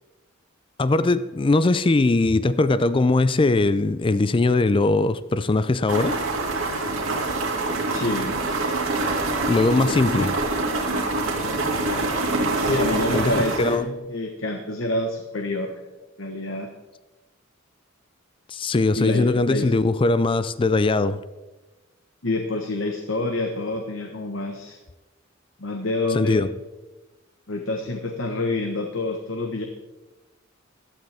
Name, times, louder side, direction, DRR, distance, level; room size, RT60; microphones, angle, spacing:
voice 1, 0.8-6.2 9.5-10.4 13.1-14.0 18.5-21.2 26.1-26.5, left 2 dB, 25° left, 0.4 m, -20 dB
sound 1, 5.9-13.8, right 2 dB, 85° right, 2.5 m, -25 dB
voice 2, 7.9-8.4 12.6-15.7 16.2-16.7 19.0-19.7 22.2-24.8 25.6-26.5 27.5-29.6, left 2 dB, 65° left, 1.1 m, -27 dB
15.5 x 12.0 x 3.5 m
head